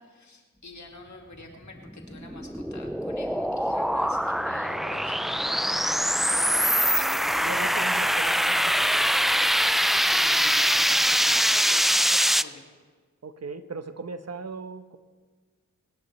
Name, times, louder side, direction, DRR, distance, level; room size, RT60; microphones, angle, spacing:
voice 1, 0.0-6.8 10.0-12.7, left 2 dB, 60° left, 2 dB, 2.2 m, -46 dB
sound 1, 1.9-12.4, equal, ahead, 0.4 m, -23 dB
voice 2, 7.4-9.1 13.2-15.0, right 4 dB, 50° right, 9 dB, 1.1 m, -38 dB
27.5 x 10.5 x 3.3 m, 1.4 s
cardioid pair, 45°, 32 cm